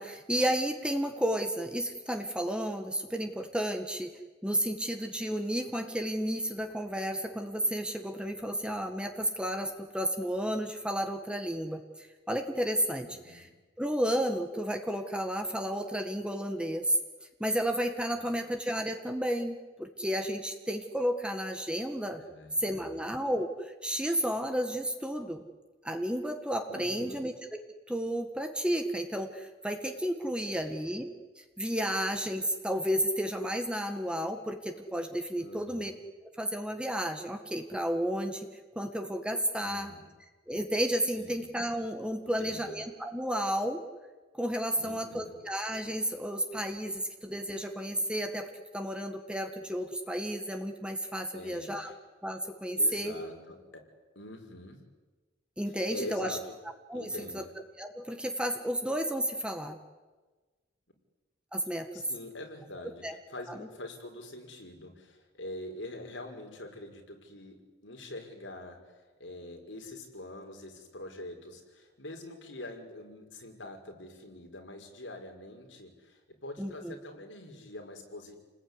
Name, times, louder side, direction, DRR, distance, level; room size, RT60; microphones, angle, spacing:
voice 1, 0.0-4.1 4.4-13.5 13.8-17.0 17.4-22.2 22.6-25.4 25.8-27.3 27.9-31.1 31.3-35.9 36.4-38.5 38.7-39.9 40.5-43.8 44.3-51.9 52.2-53.1 55.6-56.4 56.9-57.1 57.3-57.4 57.8-59.8 61.5-61.9 63.0-63.1 63.6-63.7 76.6-76.9, equal, 5° right, 5 dB, 1.8 m, -32 dB
voice 2, 13.0-13.4 18.2-18.4 22.2-23.0 26.7-27.2 30.4-30.8 35.4-35.9 39.6-40.0 41.1-41.4 42.4-42.7 44.7-45.3 51.3-52.0 52.8-53.8 54.2-54.8 55.7-56.6 56.9-57.5 61.9-67.6 67.8-78.4, left 1 dB, 85° left, 3 dB, 5.4 m, -45 dB
29.5 x 20.0 x 9.9 m, 1.3 s
head